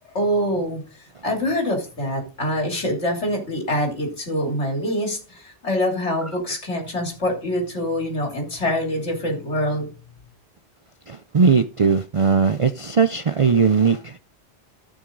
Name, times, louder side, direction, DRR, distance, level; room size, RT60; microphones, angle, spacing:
voice 1, 0.1-0.8 1.2-9.9, equal, 75° left, 3.6 m, -25 dB
voice 2, 11.1-14.1, right 5 dB, 45° right, 0.4 m, -19 dB
14.0 x 6.4 x 3.9 m
omnidirectional pair, 1.2 m